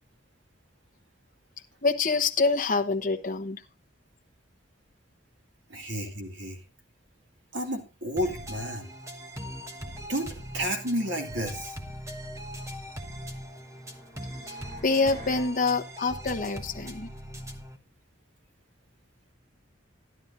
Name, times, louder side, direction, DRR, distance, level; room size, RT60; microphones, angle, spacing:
voice 1, 1.8-3.6 14.8-17.1, left 4 dB, 45° left, 7 dB, 1.0 m, -26 dB
voice 2, 5.7-6.6 7.5-8.9 10.1-11.8, equal, 65° right, 3 dB, 2.3 m, -31 dB
sound 1, 8.2-17.8, equal, 15° right, 1.1 m, -40 dB
sound 2, 12.9-15.5, equal, 40° right, 6.7 m, -50 dB
12.0 x 11.5 x 2.6 m, 0.29 s
head